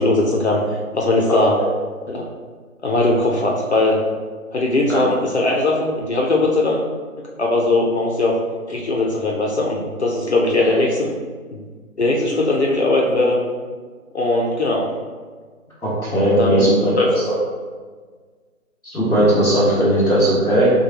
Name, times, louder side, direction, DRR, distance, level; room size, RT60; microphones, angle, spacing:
voice 1, 0.0-1.6 2.1-2.2 2.8-4.0 4.5-6.8 7.4-8.4 8.7-11.1 11.5-11.6 12.0-13.4 14.1-14.9 16.4-16.7 17.0-17.1, left 2 dB, 50° left, -1 dB, 0.6 m, -19 dB
voice 2, 1.3-1.7 4.9-5.0 10.6-10.8 15.8-17.0 17.3-17.4 18.8-20.7, right 1 dB, 5° right, -21 dB, 1.1 m, -18 dB
6.2 x 2.2 x 2.9 m, 1.5 s
figure-of-eight pair, 170°, 42 cm